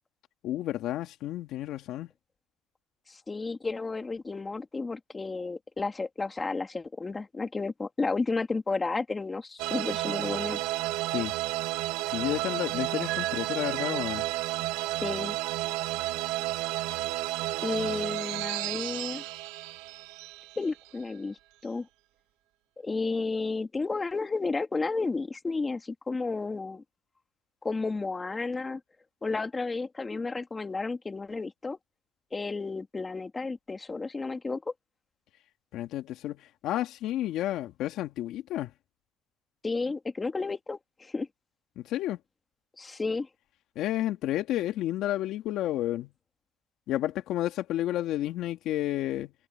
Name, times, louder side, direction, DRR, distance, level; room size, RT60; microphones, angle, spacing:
voice 1, 0.4-2.1 11.1-11.3 11.8-14.2 35.7-38.7 41.8-42.2 43.7-46.1 46.9-49.3, left 13 dB, 65° left, 2.8 m, -31 dB
voice 2, 3.1-10.6 15.0-15.4 17.6-19.2 20.6-21.4 21.6-21.9 22.8-26.8 27.6-28.8 29.2-31.8 32.3-34.6 39.6-41.3 42.8-43.3, left 3 dB, 20° left, 3.1 m, -32 dB
sound 1, 9.6-21.0, right 17 dB, 90° right, 1.3 m, -32 dB
cardioid pair, 125°, 0 cm